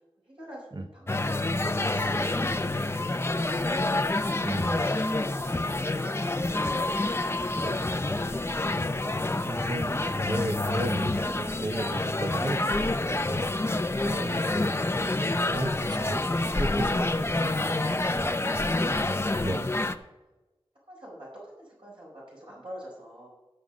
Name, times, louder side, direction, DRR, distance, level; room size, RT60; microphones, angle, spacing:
voice 1, 0.3-1.2 1.5-3.8 4.7-6.4 20.9-23.3, equal, 60° right, -6 dB, 4.5 m, -47 dB
sound 1, 1.1-19.9, left 2 dB, 25° left, 0.7 m, -27 dB
voice 2, 4.4-4.9 7.5-8.3 9.4-13.5 14.0-14.7 15.2-16.2 16.5-17.2 18.1-18.4 19.4-19.7, right 1 dB, 45° right, 7 dB, 0.9 m, -35 dB
12.5 x 5.5 x 6.3 m, 1.1 s
wide cardioid pair, 50°, 10 cm